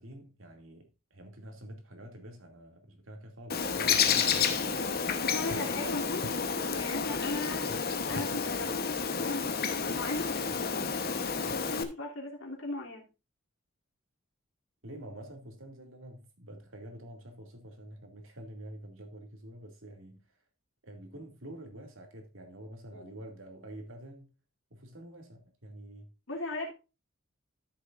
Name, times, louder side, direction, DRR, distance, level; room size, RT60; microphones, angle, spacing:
voice 1, 0.0-4.7 5.7-6.1 14.8-20.2 20.8-24.3 24.7-26.1, right 1 dB, 70° right, 2.5 m, -47 dB
Bird, 3.5-11.8, left 6 dB, 45° left, 1.0 m, -30 dB
voice 2, 5.2-6.3 6.8-7.7 8.1-8.8 9.2-9.5 9.9-10.8 11.3-13.1 22.9-23.1 26.3-26.7, left 2 dB, 65° left, 3.0 m, -37 dB
13.0 x 6.9 x 2.5 m
head